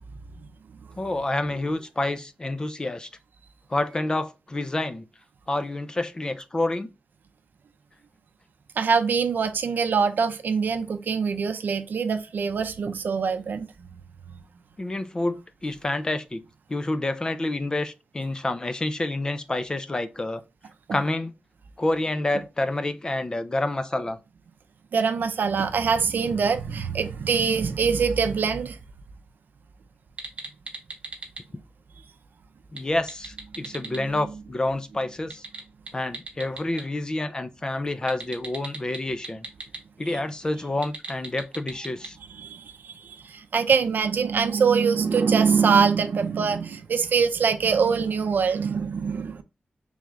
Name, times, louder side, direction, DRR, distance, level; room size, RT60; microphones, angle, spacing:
voice 1, 1.0-3.1 3.7-5.0 5.5-6.9 14.8-16.4 16.7-20.4 20.9-21.3 21.8-24.2 32.7-35.4 35.9-39.5 40.0-42.2, left 2 dB, 25° left, 0.4 m, -28 dB
voice 2, 8.8-13.9 20.9-21.0 24.9-28.8 33.6-33.7 33.9-34.1 40.1-40.2 42.3-49.4, right 5 dB, 75° right, 0.5 m, -24 dB
sound 1, 30.1-31.4 32.6-34.0 35.2-36.8 38.1-39.8 40.7-42.1, right 3 dB, 40° right, 0.9 m, -38 dB
3.4 x 3.2 x 3.6 m
wide cardioid pair, 125°, 3 cm